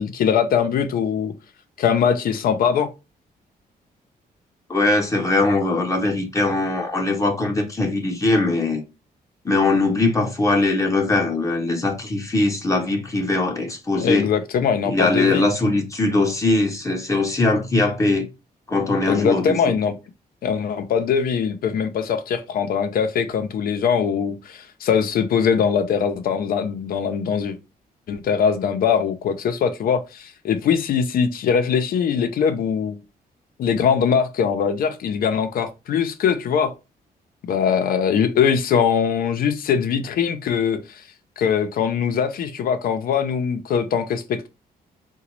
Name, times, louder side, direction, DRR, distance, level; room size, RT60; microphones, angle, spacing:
voice 1, 0.0-1.3 1.8-2.9 13.9-15.4 19.1-19.9 20.4-27.6 28.1-33.0 33.6-36.7 37.5-40.8 41.4-44.5, left 7 dB, 65° left, 0.5 m, -21 dB
voice 2, 4.7-8.8 9.4-14.3 14.8-18.3 18.7-19.6, left 2 dB, 20° left, 0.7 m, -21 dB
3.9 x 2.2 x 3.0 m
cardioid pair, 125°, 16 cm